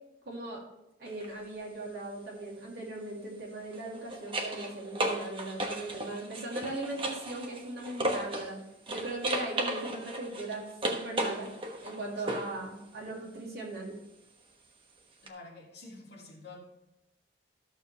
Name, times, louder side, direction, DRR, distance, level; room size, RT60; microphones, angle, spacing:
voice 1, 0.2-0.6 1.0-8.6 8.9-11.5 11.8-14.0, right 2 dB, 55° right, -3 dB, 3.0 m, -39 dB
sound 1, 1.1-1.3 3.6-8.5 8.9-12.6 15.3-15.4, right 1 dB, 25° right, 1.1 m, -35 dB
voice 2, 15.2-16.6, left 3 dB, 55° left, -2 dB, 2.5 m, -49 dB
13.5 x 6.9 x 3.3 m, 0.94 s
head